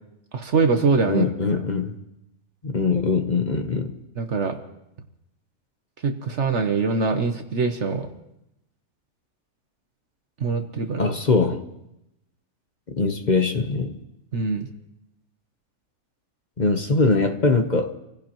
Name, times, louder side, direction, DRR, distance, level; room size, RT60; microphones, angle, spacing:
voice 1, 0.3-1.3 4.2-4.6 6.0-8.1 10.4-11.1 14.3-14.7, right 4 dB, 55° right, 6 dB, 1.1 m, -23 dB
voice 2, 1.1-1.9 2.6-4.0 11.0-11.6 12.9-14.0 16.6-17.9, left 3 dB, 35° left, 5 dB, 0.9 m, -22 dB
27.0 x 16.0 x 3.0 m, 0.87 s
omnidirectional pair, 1.6 m